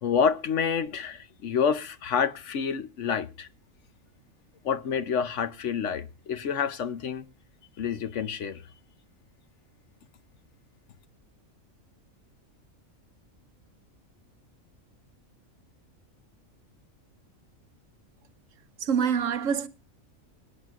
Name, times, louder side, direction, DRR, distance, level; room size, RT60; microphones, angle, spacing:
voice 1, 0.0-3.5 4.6-7.3 7.8-8.6, left 6 dB, 65° left, 1.0 m, -28 dB
voice 2, 18.8-19.7, right 7 dB, 70° right, 1.2 m, -25 dB
24.5 x 9.1 x 2.4 m
omnidirectional pair, 1.4 m